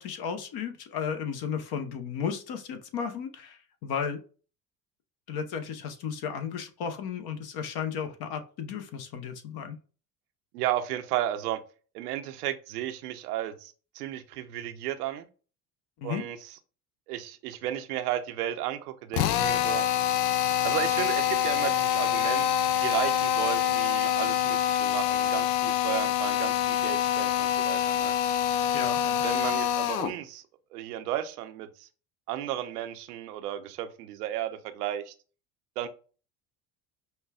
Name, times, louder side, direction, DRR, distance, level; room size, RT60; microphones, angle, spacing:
voice 1, 0.0-4.2 5.3-9.8 16.0-16.2 28.7-29.2, left 7 dB, 55° left, 7 dB, 0.9 m, -34 dB
voice 2, 10.5-11.6 11.9-15.3 16.0-16.4 17.1-19.8 20.6-22.5 22.8-28.1 29.2-30.4 30.7-31.9 32.3-35.1 35.8-35.9, right 12 dB, 85° right, 9 dB, 0.6 m, -33 dB
Drill, 19.1-30.2, left 10 dB, 85° left, 0.5 m, -26 dB
5.4 x 2.3 x 2.3 m, 0.37 s
hypercardioid pair, 75°, 45 cm